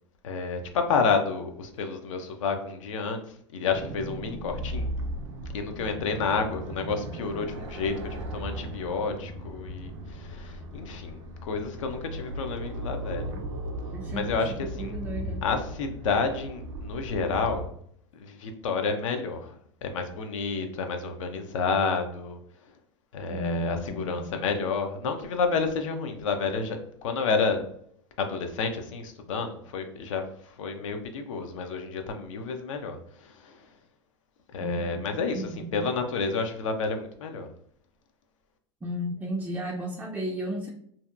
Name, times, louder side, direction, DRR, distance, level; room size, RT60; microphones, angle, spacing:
voice 1, 0.2-3.2 3.5-4.9 5.5-13.3 14.1-15.0 15.4-17.7 18.1-22.4 23.1-27.6 28.2-33.6 34.5-37.5, left 4 dB, 75° left, 6 dB, 0.5 m, -30 dB
sound 1, 3.7-17.7, right 1 dB, 65° right, 0.5 m, -37 dB
voice 2, 13.9-14.4 14.8-15.4 23.3-24.4 34.6-35.0 35.3-35.8 38.8-40.7, right 1 dB, 10° right, -2 dB, 0.3 m, -34 dB
2.7 x 2.1 x 2.4 m, 0.65 s
hypercardioid pair, 100°, 16 cm